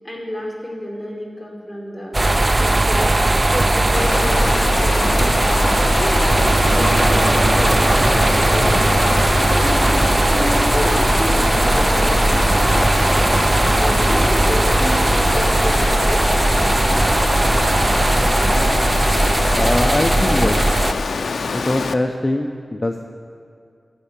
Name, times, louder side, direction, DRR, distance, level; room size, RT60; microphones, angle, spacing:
voice 1, 0.0-2.2 2.6-3.1 3.5-5.4 6.0-8.7 9.6-10.0 10.3-12.2 13.7-15.8 16.0-16.4, equal, ahead, -2 dB, 2.5 m, -30 dB
sound 1, 2.1-20.9, right 1 dB, 25° right, 0.4 m, -17 dB
Water, 3.9-21.9, left 4 dB, 85° left, 0.4 m, -25 dB
sound 2, 6.6-13.2, right 2 dB, 85° right, 0.8 m, -33 dB
voice 2, 19.6-20.7 21.5-23.1, left 1 dB, 25° left, 3 dB, 0.5 m, -22 dB
14.5 x 5.3 x 7.3 m, 2.3 s
wide cardioid pair, 105°, 0 cm